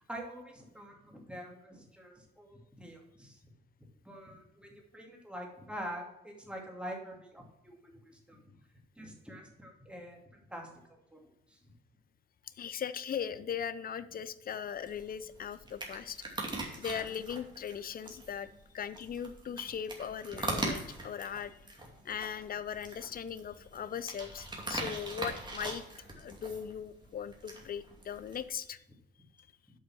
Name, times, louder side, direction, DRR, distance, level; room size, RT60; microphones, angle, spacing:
voice 1, 0.1-3.4 4.0-8.4 9.0-11.2 11.5-11.6, equal, 5° right, 0 dB, 2.6 m, -46 dB
voice 2, 12.6-16.2 16.8-18.5 18.7-21.8 22.0-25.8 26.2-28.8, left 8 dB, 45° left, 14 dB, 0.7 m, -39 dB
sound 1, 14.7-28.5, right 2 dB, 20° right, 2.5 m, -42 dB
8.3 x 5.7 x 5.9 m, 0.93 s
cardioid pair, 90°, 20 cm